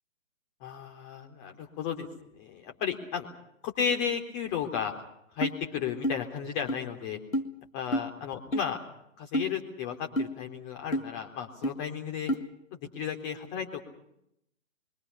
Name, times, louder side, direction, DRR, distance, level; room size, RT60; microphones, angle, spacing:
voice 1, 0.6-2.1 2.3-3.3 3.6-4.9 5.4-7.2 7.7-8.8 9.2-12.3 12.7-14.0, left 7 dB, 25° left, 4 dB, 3.8 m, -34 dB
sound 1, 5.4-5.6 6.0-6.2 6.7-6.8 7.3-7.5 7.9-8.1 8.5-8.7 9.3-9.5 10.2-10.3 10.9-11.1 11.6-11.7 12.3-12.4, equal, 90° left, 1.9 m, -28 dB
27.0 x 24.0 x 5.7 m, 0.76 s
figure-of-eight pair, 135°, 39 cm